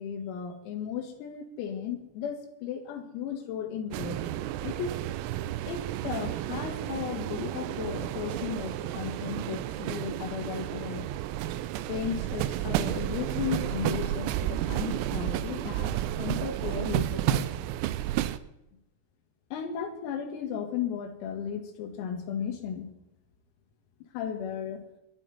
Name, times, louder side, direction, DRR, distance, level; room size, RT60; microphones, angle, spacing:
voice 1, 0.0-4.2 4.6-5.0 5.7-11.0 11.9-15.9 16.2-17.5 19.5-22.9 24.0-24.8, left 8 dB, 90° left, 5 dB, 4.8 m, -35 dB
sound 1, 3.9-18.4, right 13 dB, 85° right, 3.4 m, -31 dB
22.0 x 12.0 x 4.3 m, 0.87 s
omnidirectional pair, 6.0 m